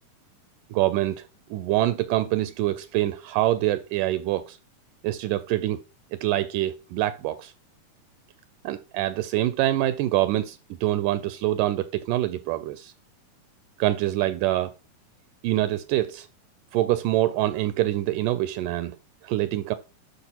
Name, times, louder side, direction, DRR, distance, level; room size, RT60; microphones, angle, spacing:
voice 1, 0.7-4.6 5.0-5.8 6.1-7.5 8.6-12.9 13.8-14.7 15.4-16.3 16.7-19.0 19.2-19.7, right 14 dB, 80° right, 2.1 m, -25 dB
12.0 x 4.9 x 2.9 m
omnidirectional pair, 3.8 m